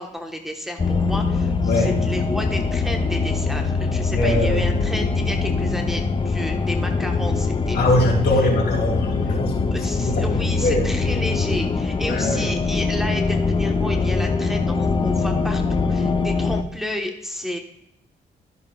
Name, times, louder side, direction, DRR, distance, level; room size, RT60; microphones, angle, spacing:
voice 1, 0.0-8.5 9.3-9.4 9.7-17.6, left 1 dB, ahead, 2 dB, 1.2 m, -32 dB
sound 1, 0.8-16.6, left 4 dB, 30° left, 0.6 m, -23 dB
voice 2, 4.1-4.6 7.7-9.7 10.0-10.2 10.5-10.9 12.1-12.5, left 1 dB, 70° left, -1 dB, 2.8 m, -22 dB
13.0 x 6.8 x 2.4 m, 0.83 s
cardioid pair, 80°, 18 cm